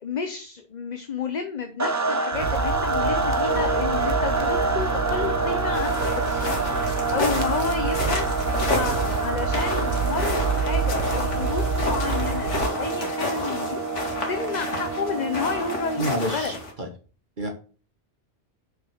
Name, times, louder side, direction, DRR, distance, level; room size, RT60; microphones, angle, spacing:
voice 1, 0.0-6.2 6.9-8.3 8.7-13.8 14.3-16.5, left 5 dB, 40° left, 7 dB, 0.9 m, -31 dB
sound 1, 1.8-16.5, right 3 dB, 15° right, 0.8 m, -27 dB
sound 2, 2.3-12.7, right 5 dB, 70° right, 1.3 m, -29 dB
sound 3, 5.7-16.7, left 2 dB, 85° left, 2.4 m, -31 dB
voice 2, 16.0-16.9 17.4-17.5, equal, 45° right, 3 dB, 1.6 m, -28 dB
6.6 x 6.0 x 6.5 m, 0.38 s
omnidirectional pair, 1.2 m